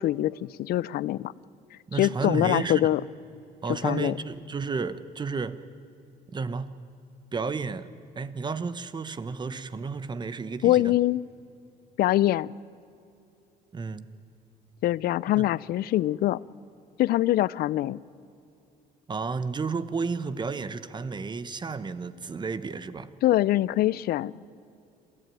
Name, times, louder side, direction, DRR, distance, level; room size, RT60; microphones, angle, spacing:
voice 1, 0.0-1.3 1.9-3.0 3.7-4.1 10.6-11.2 12.0-12.5 14.8-16.4 17.0-18.0 23.2-24.3, left 14 dB, 65° left, 0.5 m, -24 dB
voice 2, 1.9-2.8 3.6-5.6 6.3-6.7 7.3-11.0 13.7-14.1 15.4-15.5 19.1-23.1, right 4 dB, 25° right, 1.0 m, -32 dB
27.0 x 14.5 x 9.1 m
cardioid pair, 110°, 17 cm